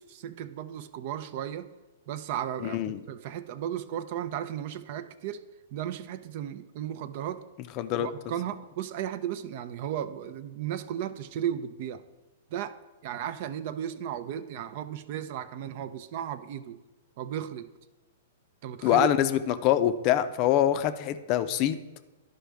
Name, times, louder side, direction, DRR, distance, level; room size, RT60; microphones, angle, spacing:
voice 1, 0.0-1.7 2.1-2.8 3.1-5.4 5.7-7.5 8.0-12.0 12.5-12.8 13.0-16.8 17.2-17.7 18.6-19.1, right 10 dB, 50° right, 13 dB, 0.5 m, -35 dB
voice 2, 2.6-3.0 7.8-8.1 18.8-21.8, left 11 dB, 40° left, 12 dB, 0.5 m, -24 dB
11.5 x 5.2 x 3.4 m, 1.2 s
hypercardioid pair, 130°, 0 cm